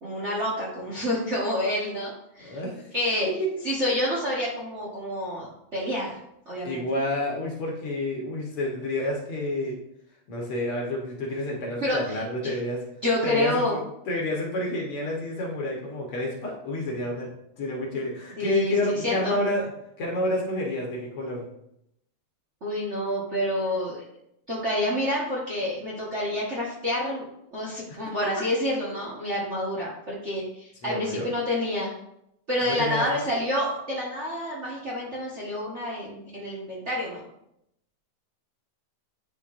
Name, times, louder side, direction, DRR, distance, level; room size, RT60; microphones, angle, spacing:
voice 1, 0.0-2.6 2.9-3.3 3.6-5.5 5.7-6.2 6.5-6.8 11.8-12.0 12.4-12.6 13.0-13.8 18.4-19.4 22.6-24.0 24.5-27.2 27.5-31.9 32.5-37.2, left 1 dB, 60° right, -5 dB, 0.7 m, -28 dB
voice 2, 2.4-2.9 3.4-3.5 6.6-9.8 10.3-12.8 13.2-13.8 14.1-17.3 17.6-19.7 20.0-21.4 27.9-28.0 30.8-31.3 32.6-33.3, left 1 dB, 60° left, -2 dB, 1.8 m, -29 dB
10.0 x 3.8 x 2.5 m, 0.78 s
omnidirectional pair, 3.4 m